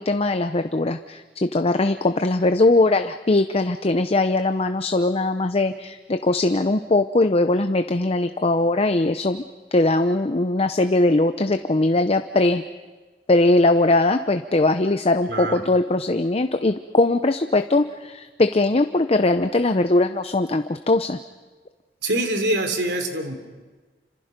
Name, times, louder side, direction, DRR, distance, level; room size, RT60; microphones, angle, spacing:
voice 1, 0.0-9.4 9.7-12.6 13.3-21.2, left 2 dB, 35° left, 9 dB, 0.7 m, -20 dB
voice 2, 15.3-15.6 22.0-23.4, right 1 dB, 70° right, 6 dB, 3.3 m, -24 dB
29.5 x 26.5 x 5.2 m, 1.3 s
head